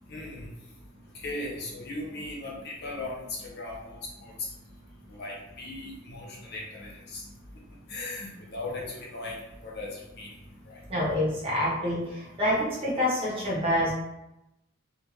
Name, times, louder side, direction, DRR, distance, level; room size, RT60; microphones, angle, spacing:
voice 1, 0.1-0.4 1.2-3.1 3.5-4.3 5.1-7.2 7.9-9.3 9.6-9.9 10.2-10.3 10.7-10.8, left 2 dB, 55° left, -3 dB, 1.1 m, -38 dB
voice 2, 10.9-12.0 12.4-14.0, left 1 dB, 30° right, -6 dB, 1.6 m, -26 dB
3.5 x 2.9 x 4.6 m, 0.90 s
head